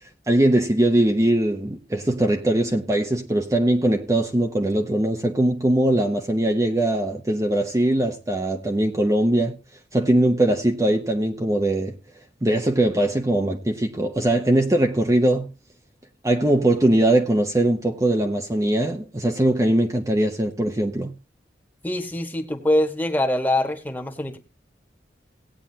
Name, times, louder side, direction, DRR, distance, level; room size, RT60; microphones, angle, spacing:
voice 1, 0.3-9.6 9.9-12.0 12.4-15.5 16.2-21.1, right 1 dB, 20° right, 0.8 m, -21 dB
voice 2, 21.8-24.4, left 1 dB, 10° left, 1.5 m, -23 dB
18.0 x 8.9 x 2.8 m
head